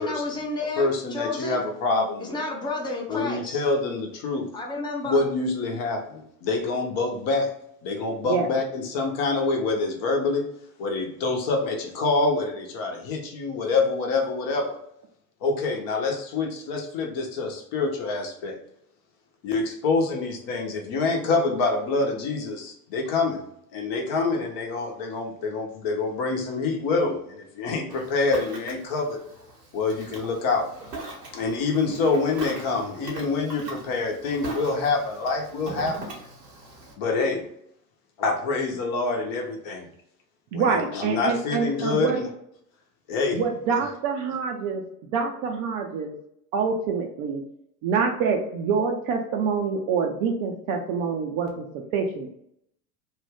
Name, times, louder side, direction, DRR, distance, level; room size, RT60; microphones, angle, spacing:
voice 1, 0.0-1.6 2.2-3.6 4.5-5.2, left 3 dB, 10° left, -1 dB, 0.7 m, -31 dB
voice 2, 0.8-2.4 3.1-4.5 5.0-7.5 7.8-10.5 10.8-14.8 15.4-18.6 19.4-23.4 23.7-29.2 29.7-30.7 31.3-36.0 37.0-37.4 38.2-39.9 40.5-42.3 43.1-43.4, left 3 dB, 45° left, 2 dB, 1.0 m, -26 dB
Ocean, 27.9-36.9, right 2 dB, 85° right, 1.1 m, -40 dB
voice 3, 40.5-42.2 43.3-44.8 45.1-46.1 46.5-47.4 47.8-52.4, right 5 dB, 45° right, 2 dB, 0.6 m, -26 dB
2.7 x 2.2 x 3.4 m, 0.72 s
figure-of-eight pair, 80°, 48 cm